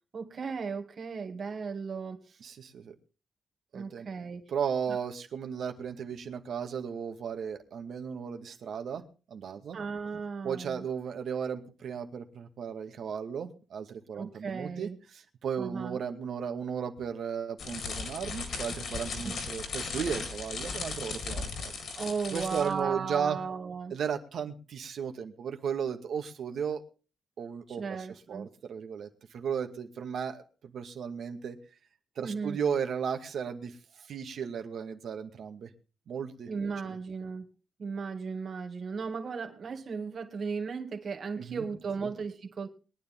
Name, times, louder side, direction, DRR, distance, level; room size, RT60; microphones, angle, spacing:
voice 1, 0.1-2.4 3.7-4.4 4.9-5.0 9.7-10.8 14.2-15.0 15.6-16.0 19.2-19.3 21.9-23.9 27.7-28.5 32.2-32.6 36.5-37.5 37.8-42.7, right 5 dB, 45° right, 2.5 m, -36 dB
voice 2, 2.4-2.9 3.7-9.0 9.3-9.8 10.4-21.7 22.3-23.4 23.9-26.8 27.4-27.8 28.3-30.4 30.7-31.6 32.2-35.7 36.1-36.5 36.8-37.0 41.4-41.7 42.0-42.1, right 7 dB, 65° right, 2.2 m, -35 dB
sound 1, 17.6-22.8, left 4 dB, 60° left, 4.1 m, -37 dB
22.0 x 10.0 x 3.8 m
cardioid pair, 105°, 0 cm